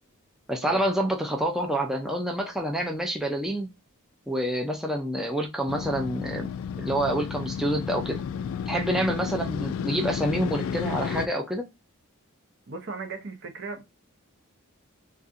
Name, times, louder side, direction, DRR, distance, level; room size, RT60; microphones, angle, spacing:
voice 1, 0.5-3.7 4.3-6.5 6.8-8.2 8.7-11.7, right 1 dB, ahead, 0.4 m, -27 dB
Motorcycle, 5.7-11.3, left 7 dB, 70° left, 0.3 m, -32 dB
voice 2, 8.9-9.3 12.7-13.8, right 3 dB, 55° right, 0.7 m, -37 dB
4.1 x 2.4 x 2.5 m
head